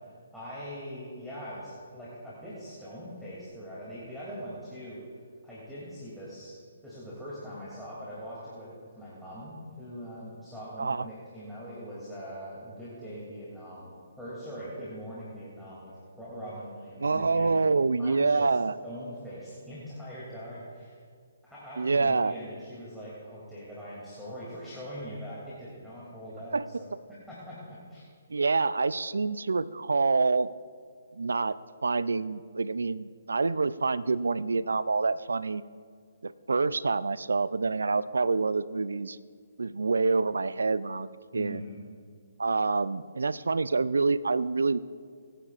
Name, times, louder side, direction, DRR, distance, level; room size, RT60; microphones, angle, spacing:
voice 1, 0.0-5.0 5.4-6.6 6.8-13.9 14.2-17.6 18.0-18.5 18.8-21.0 21.4-26.9 27.3-28.0 41.3-41.8, equal, ahead, -10 dB, 2.8 m, -42 dB
voice 2, 17.0-18.7 21.8-22.3 26.5-26.7 28.3-30.5 31.1-31.6 31.8-35.6 36.2-39.2 39.6-41.1 41.3-41.6 42.4-44.8, right 4 dB, 85° right, 17 dB, 0.4 m, -27 dB
24.0 x 10.0 x 2.5 m, 2.1 s
hypercardioid pair, 150°, 0 cm